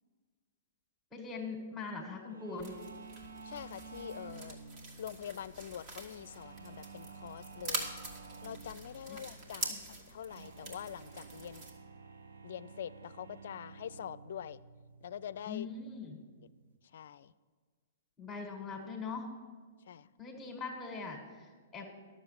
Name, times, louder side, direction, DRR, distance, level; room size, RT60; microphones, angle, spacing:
voice 1, 1.1-2.7 9.1-9.2 9.7-9.8 15.5-16.2 18.2-19.3 20.2-21.8, left 4 dB, 15° left, -1 dB, 1.8 m, -41 dB
sound 1, 2.3-16.8, right 4 dB, 75° right, 0.8 m, -52 dB
sound 2, 2.6-11.7, right 2 dB, 40° right, 2.1 m, -45 dB
voice 2, 3.4-4.6 5.0-7.9 8.4-9.8 10.1-11.7 12.4-14.6 15.0-15.7 16.9-17.3 19.9-20.1, left 9 dB, 60° left, 18 dB, 0.4 m, -44 dB
11.5 x 7.3 x 6.6 m, 1.6 s
figure-of-eight pair, 110°, 0 cm